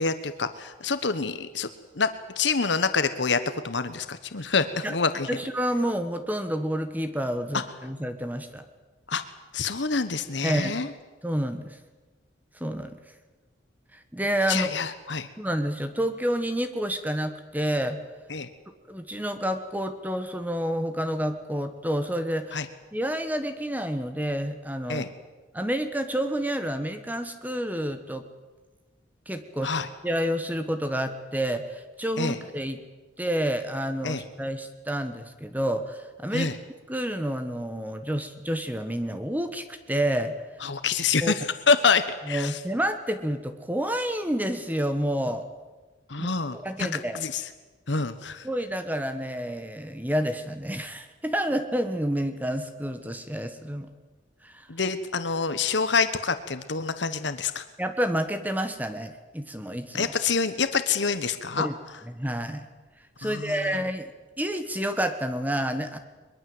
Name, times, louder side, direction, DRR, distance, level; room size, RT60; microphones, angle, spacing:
voice 1, 0.0-1.7 2.0-2.1 2.4-5.3 9.1-9.2 9.5-10.9 14.5-15.3 18.3-18.5 22.5-22.6 24.9-25.1 29.6-29.9 32.2-32.4 34.0-34.2 36.3-36.5 40.6-42.6 46.1-47.4 47.9-48.5 54.7-57.6 59.9-61.7 63.2-63.7, left 5 dB, 75° left, 11 dB, 1.3 m, -26 dB
voice 2, 5.3-8.6 10.4-10.8 11.2-11.8 12.6-13.0 13.9-14.7 15.4-18.0 18.9-22.6 22.9-25.1 25.5-28.2 29.3-29.7 30.0-32.8 33.2-36.5 36.9-40.3 41.2-41.3 42.3-45.5 46.2-46.3 46.6-47.2 48.4-53.9 54.4-54.7 57.8-60.1 61.6-61.7 62.1-62.7 63.2-64.1 64.4-66.0, equal, 10° right, 9 dB, 1.4 m, -29 dB
22.5 x 22.0 x 7.9 m, 1.2 s
head